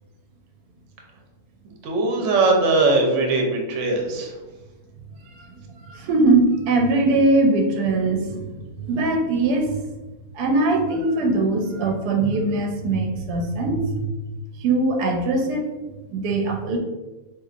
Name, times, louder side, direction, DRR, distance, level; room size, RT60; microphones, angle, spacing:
voice 1, 1.8-4.3, right 3 dB, 60° right, 2 dB, 0.9 m, -20 dB
voice 2, 5.2-9.8 10.3-14.1 14.6-15.7 16.1-16.8, right 2 dB, 90° right, 3 dB, 1.2 m, -21 dB
4.5 x 2.6 x 2.4 m, 1.1 s
omnidirectional pair, 1.6 m